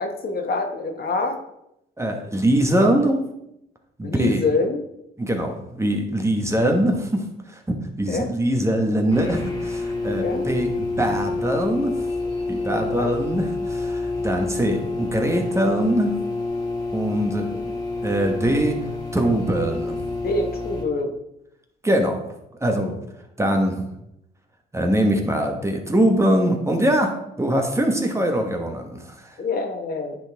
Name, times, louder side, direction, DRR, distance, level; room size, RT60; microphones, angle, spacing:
voice 1, 0.0-1.4 4.0-4.8 8.1-8.3 10.0-10.4 12.7-13.1 20.2-21.1 29.4-30.2, left 3 dB, 50° left, 5 dB, 1.1 m, -26 dB
voice 2, 2.0-3.2 4.0-4.4 5.2-12.1 12.5-16.2 16.9-17.8 18.0-18.8 19.1-20.0 21.8-22.3 22.6-23.0 23.4-23.9 24.7-27.1 27.4-29.4, right 1 dB, 15° right, 3 dB, 1.2 m, -22 dB
sound 1, 9.1-20.8, left 3 dB, 20° left, 1.9 m, -28 dB
10.5 x 4.0 x 3.5 m, 0.81 s
cardioid pair, 90°, 20 cm